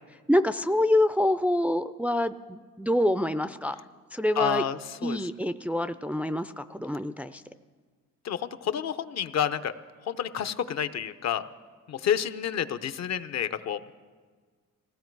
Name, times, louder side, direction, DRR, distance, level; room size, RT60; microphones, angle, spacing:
voice 1, 0.3-3.8 4.1-4.6 5.0-7.4, left 1 dB, 5° right, 10 dB, 0.4 m, -26 dB
voice 2, 4.4-5.2 8.2-9.7 10.1-11.5 11.9-13.9, left 9 dB, 60° left, 11 dB, 0.8 m, -29 dB
19.5 x 16.0 x 4.7 m, 1.5 s
cardioid pair, 90°, 30 cm